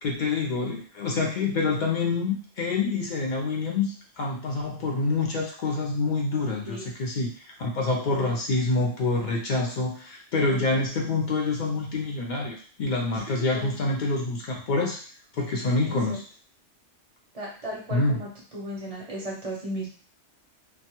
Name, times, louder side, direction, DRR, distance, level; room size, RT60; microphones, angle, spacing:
voice 1, 0.0-15.0 15.4-16.2 17.9-18.2, left 3 dB, 60° left, -1 dB, 0.5 m, -27 dB
voice 2, 10.5-11.2 13.3-13.8 15.8-16.2 17.3-18.3 18.5-19.9, right 1 dB, 40° right, -4 dB, 0.6 m, -36 dB
2.2 x 2.1 x 2.8 m, 0.42 s
omnidirectional pair, 1.3 m